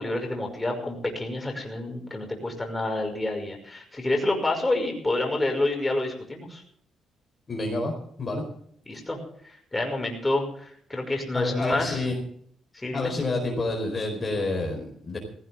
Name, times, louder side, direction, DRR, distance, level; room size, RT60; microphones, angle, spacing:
voice 1, 0.0-6.6 8.9-9.2 9.5-12.1 12.7-13.1, left 2 dB, 15° left, 2 dB, 5.7 m, -28 dB
voice 2, 7.5-8.4 11.3-12.1 12.9-15.2, left 2 dB, 35° left, 1 dB, 4.6 m, -28 dB
17.0 x 16.5 x 3.7 m, 0.65 s
cardioid pair, 90°, 0 cm